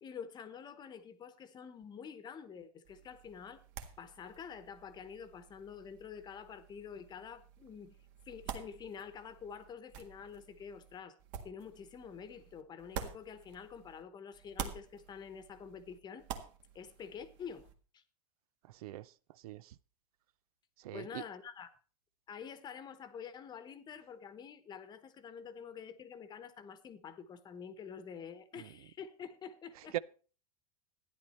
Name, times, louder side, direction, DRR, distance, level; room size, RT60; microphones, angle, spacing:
voice 1, 0.0-3.6 4.0-8.0 8.3-11.2 11.4-16.3 16.7-17.7 17.9-18.0 20.9-21.7 22.3-30.0, left 7 dB, 20° left, 1.0 m, -48 dB
sound 1, 2.9-14.0 14.3-17.7, right 7 dB, 55° right, 1.8 m, -49 dB
voice 2, 18.7-19.1 19.4-19.7 20.8-21.2 28.6-28.7 29.9-30.0, right 14 dB, 80° right, 0.5 m, -41 dB
12.5 x 10.5 x 4.3 m
supercardioid pair, 145°, 19 cm